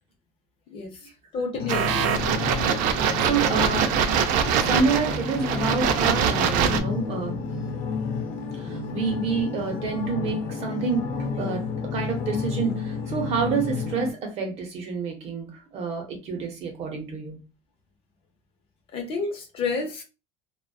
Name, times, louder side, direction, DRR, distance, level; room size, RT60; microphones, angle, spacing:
voice 1, 0.7-2.4 18.9-20.0, left 4 dB, 40° left, 0.7 m, -31 dB
sound 1, 1.5-14.1, left 5 dB, 85° left, 0.7 m, -31 dB
sound 2, 1.7-6.8, right 8 dB, 65° right, 0.4 m, -23 dB
voice 2, 3.2-3.9 4.6-7.5 8.6-17.4, right 5 dB, 45° right, 0.8 m, -28 dB
2.5 x 2.2 x 2.2 m
cardioid pair, 160°, 15 cm